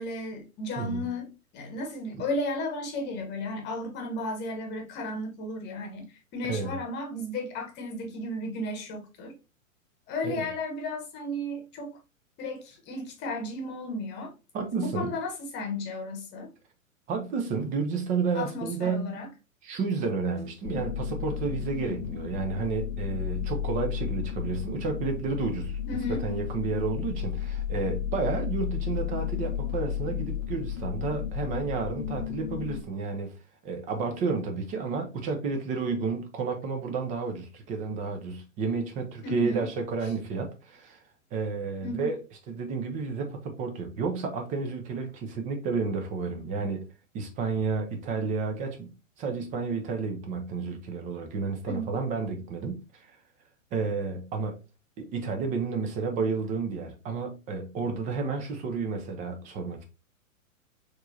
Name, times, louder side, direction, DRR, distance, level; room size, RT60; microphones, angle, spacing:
voice 1, 0.0-9.3 10.1-12.0 12.4-14.3 14.7-16.5 18.3-19.3 25.9-26.2 39.2-39.7 41.8-42.1 51.7-51.9, left 1 dB, 25° left, 1.1 m, -34 dB
voice 2, 14.5-15.1 17.1-19.2 19.6-25.8 26.2-33.3 33.6-41.0 41.3-42.2 42.5-46.8 47.1-48.9 49.2-53.1 53.7-54.6 55.0-59.8, right 4 dB, 20° right, 0.6 m, -31 dB
sound 1, 20.6-32.8, left 9 dB, 40° left, 0.6 m, -33 dB
4.4 x 3.2 x 2.6 m
figure-of-eight pair, 115°, 42 cm